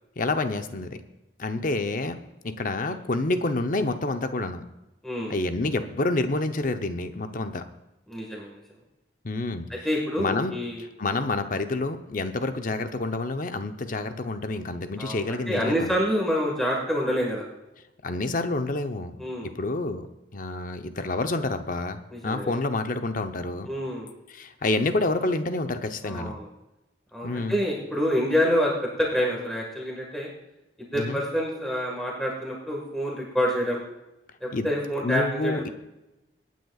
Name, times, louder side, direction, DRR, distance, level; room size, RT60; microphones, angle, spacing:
voice 1, 0.2-1.0 1.4-2.2 2.4-4.6 5.3-7.6 9.2-9.7 10.2-10.5 11.0-15.9 18.0-20.1 20.3-23.7 24.3-26.3 27.2-27.6 30.9-31.2 34.5-34.7 35.0-35.7, left 2 dB, 50° left, 8 dB, 0.8 m, -28 dB
voice 2, 5.0-5.3 8.1-8.6 9.7-10.8 15.0-17.5 19.2-19.5 22.1-22.6 23.7-24.1 26.0-26.5 27.1-30.3 30.8-33.8 34.4-35.7, equal, ahead, -3 dB, 1.7 m, -27 dB
26.0 x 9.3 x 2.4 m, 0.98 s
head